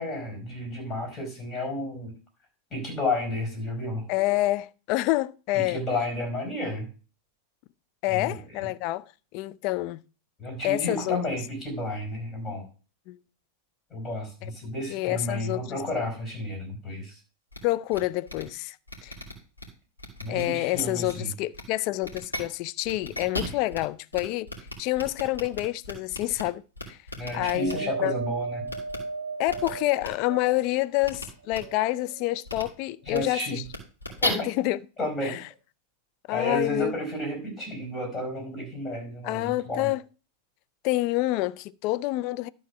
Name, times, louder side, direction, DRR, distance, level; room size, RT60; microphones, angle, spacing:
voice 1, 0.0-2.1 2.7-4.1 5.5-6.9 8.1-8.4 10.4-12.6 13.9-17.2 20.2-21.3 27.2-28.7 33.0-33.6 34.2-34.5 35.0-35.4 36.3-39.9, left 1 dB, 20° left, 4.6 m, -32 dB
voice 2, 4.1-5.8 8.0-9.0 9.3-10.0 10.6-11.2 13.1-13.2 14.4-14.5 14.9-15.8 17.6-18.8 19.0-19.2 20.3-24.5 24.8-26.6 26.9-27.0 27.3-28.1 29.4-33.6 34.4-34.8 35.2-35.4 36.3-36.9 39.2-40.0 40.8-42.5, left 18 dB, 45° left, 0.4 m, -27 dB
sound 1, 17.5-17.6 17.9-18.0 18.3-18.4 18.9-19.6 20.0-20.4 20.7-21.1 21.5-21.6 22.0-22.4 22.8-23.8 24.1-24.2 24.5-26.4 26.7-27.7 28.7-29.0 29.5-29.7 30.0-30.1 31.0-31.2 31.5-31.6 32.4-32.6 33.0-33.2 33.6-34.3, left 1 dB, 85° left, 2.4 m, -34 dB
Wind, 27.3-30.8 31.4-32.5 33.2-33.3, right 4 dB, 65° right, 0.8 m, -35 dB
12.0 x 4.3 x 6.0 m
figure-of-eight pair, 90°, 0 cm